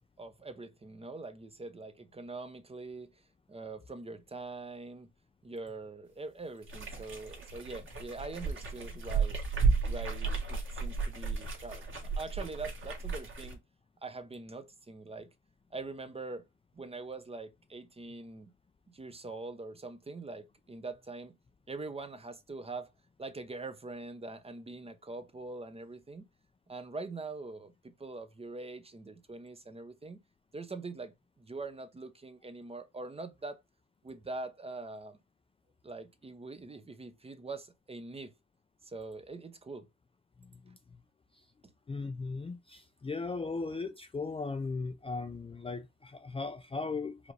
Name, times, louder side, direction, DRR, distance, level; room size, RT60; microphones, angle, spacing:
voice 1, 0.2-3.1 3.5-5.1 5.4-9.4 9.9-13.6 14.0-15.3 15.7-16.5 16.7-18.5 18.9-21.3 21.7-22.9 23.2-26.3 26.7-30.2 30.5-33.6 34.0-35.2 35.8-38.3 38.8-39.9, right 3 dB, 20° right, 0.6 m, -43 dB
sound 1, 6.6-13.5, right 4 dB, 40° right, 1.6 m, -33 dB
voice 2, 40.4-40.8 41.9-47.3, left 4 dB, 20° left, 0.4 m, -37 dB
5.0 x 2.5 x 3.2 m
cardioid pair, 90°, 30 cm